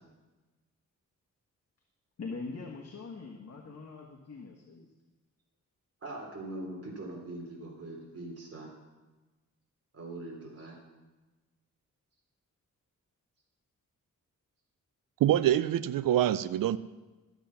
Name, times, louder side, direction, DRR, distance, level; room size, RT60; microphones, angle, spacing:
voice 1, 2.2-4.9, left 4 dB, 50° left, 0 dB, 1.4 m, -42 dB
voice 2, 6.0-8.7 9.9-10.8, right 2 dB, 45° right, -1 dB, 3.5 m, -42 dB
voice 3, 15.2-16.8, right 12 dB, 85° right, 15 dB, 0.5 m, -25 dB
13.0 x 8.2 x 5.8 m, 1.2 s
wide cardioid pair, 100°, 32 cm